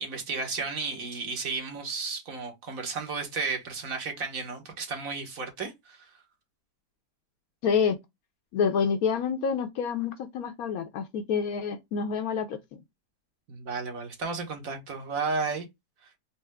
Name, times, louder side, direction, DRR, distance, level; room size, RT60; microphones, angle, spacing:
voice 1, 0.0-6.0 13.5-15.7, right 4 dB, 60° right, 1.4 m, -33 dB
voice 2, 7.6-8.0 8.5-12.8, left 6 dB, 70° left, 0.9 m, -28 dB
4.2 x 2.0 x 3.2 m
omnidirectional pair, 1.8 m